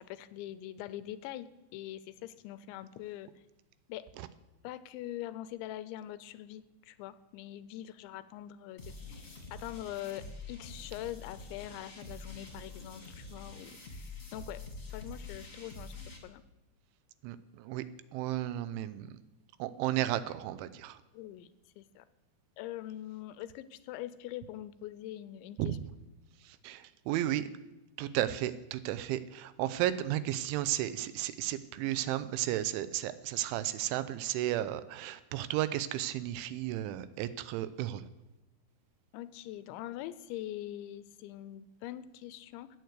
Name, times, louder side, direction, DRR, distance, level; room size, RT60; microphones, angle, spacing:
voice 1, 0.0-3.3 3.9-4.1 4.6-14.6 14.9-16.4 21.1-21.5 21.8-22.1 22.6-25.8 39.1-42.8, left 13 dB, 80° left, 14 dB, 2.8 m, -43 dB
sound 1, 8.8-16.2, left 3 dB, 25° left, 2.2 m, -46 dB
voice 2, 17.2-17.8 18.1-19.2 19.6-21.0 25.6-25.8 26.4-27.5 28.0-38.1, right 13 dB, 85° right, 13 dB, 3.1 m, -33 dB
15.0 x 9.4 x 8.1 m, 0.99 s
omnidirectional pair, 5.5 m